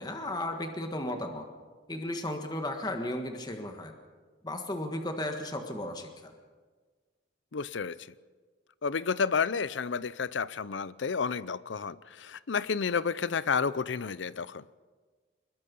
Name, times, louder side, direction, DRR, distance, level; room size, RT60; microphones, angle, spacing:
voice 1, 0.0-1.5 1.9-3.9 4.4-6.3, left 1 dB, 20° left, 4 dB, 1.6 m, -35 dB
voice 2, 7.5-8.1 8.8-14.6, left 5 dB, 80° left, 18 dB, 0.6 m, -31 dB
24.0 x 21.0 x 5.4 m, 1.4 s
head